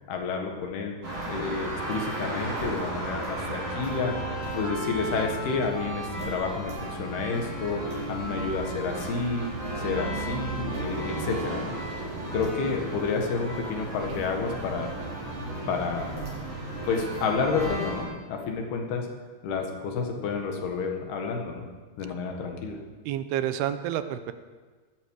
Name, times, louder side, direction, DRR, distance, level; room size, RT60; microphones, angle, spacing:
voice 1, 0.1-0.9 1.3-9.5 9.8-11.8 12.3-14.9 15.7-16.2 16.9-19.1 19.4-21.7 22.0-22.8, left 4 dB, 75° left, 2 dB, 3.7 m, -30 dB
sound 1, 1.0-18.0, right 2 dB, 50° right, 8.3 m, -34 dB
voice 2, 23.1-24.3, right 11 dB, 80° right, 11 dB, 2.7 m, -29 dB
18.0 x 14.0 x 4.8 m, 1.4 s
omnidirectional pair, 4.7 m